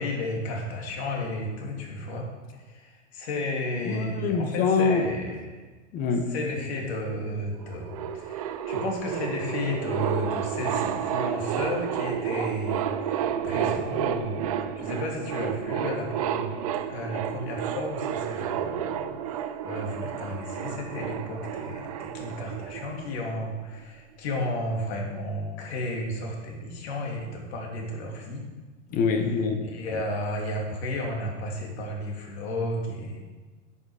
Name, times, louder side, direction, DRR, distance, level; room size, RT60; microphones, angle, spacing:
voice 1, 0.0-2.2 2.5-5.6 6.3-16.5 16.9-28.4 29.6-33.2, left 1 dB, 55° left, 0 dB, 2.8 m, -33 dB
voice 2, 3.8-5.1 5.9-6.3 28.9-29.7, left 5 dB, 20° left, 6 dB, 0.8 m, -24 dB
sound 1, 7.3-7.4 7.5-23.5, right 9 dB, 30° right, 0.4 m, -31 dB
9.6 x 8.3 x 5.0 m, 1.3 s
supercardioid pair, 155°, 38 cm